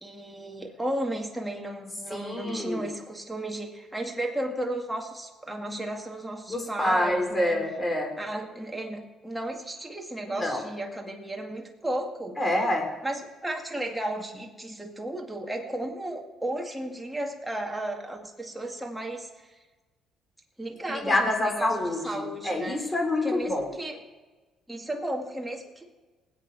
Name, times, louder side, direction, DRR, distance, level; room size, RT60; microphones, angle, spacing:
voice 1, 0.0-7.6 8.2-12.4 13.0-19.5 20.6-22.8 23.2-24.0 24.7-25.9, right 1 dB, 5° right, 1 dB, 2.1 m, -34 dB
voice 2, 2.1-2.9 6.5-8.1 10.3-10.7 12.4-12.9 20.9-23.7, left 1 dB, 20° left, 2 dB, 3.7 m, -27 dB
20.0 x 8.4 x 4.7 m, 1.3 s
supercardioid pair, 80°, 0 cm